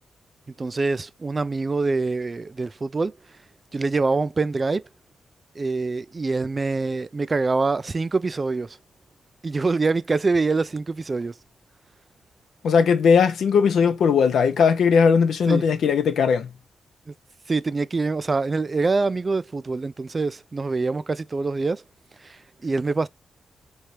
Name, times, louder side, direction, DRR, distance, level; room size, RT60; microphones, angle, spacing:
voice 1, 0.6-3.1 3.7-4.8 5.6-8.8 9.4-11.3 15.5-15.6 17.5-21.8 22.2-23.1, right 3 dB, 40° right, 0.3 m, -25 dB
voice 2, 12.6-16.5, left 6 dB, 75° left, 0.6 m, -18 dB
3.2 x 2.8 x 3.1 m
supercardioid pair, 55°, 0 cm